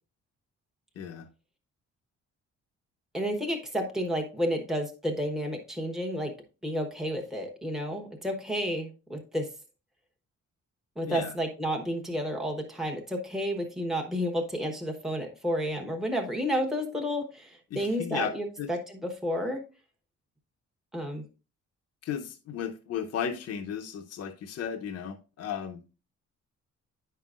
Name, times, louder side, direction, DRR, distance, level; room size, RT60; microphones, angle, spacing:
voice 1, 1.0-1.3 11.1-11.3 17.7-18.7 22.0-25.9, left 8 dB, 55° left, 0.8 m, -35 dB
voice 2, 3.1-6.3 6.6-9.5 11.0-19.6 20.9-21.2, equal, ahead, 1.0 m, -31 dB
9.9 x 5.6 x 2.4 m
wide cardioid pair, 180°, 29 cm